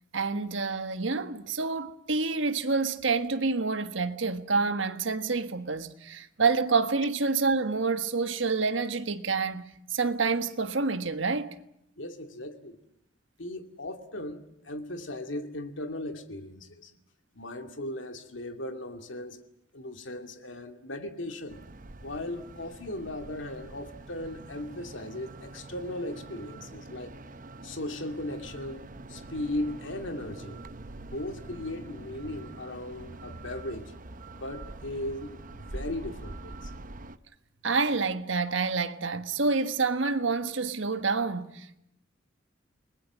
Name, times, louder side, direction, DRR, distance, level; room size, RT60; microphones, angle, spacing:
voice 1, 0.1-9.6 9.9-11.5 37.6-41.8, right 4 dB, 70° right, 1.5 m, -28 dB
voice 2, 12.0-12.8 13.4-16.9 17.3-19.4 19.7-21.6 22.0-27.1 27.6-30.6 31.0-33.9 34.3-36.7, left 1 dB, 70° left, 2.5 m, -37 dB
sound 1, 21.5-37.2, right 2 dB, 45° right, 1.0 m, -45 dB
29.5 x 20.5 x 7.5 m
head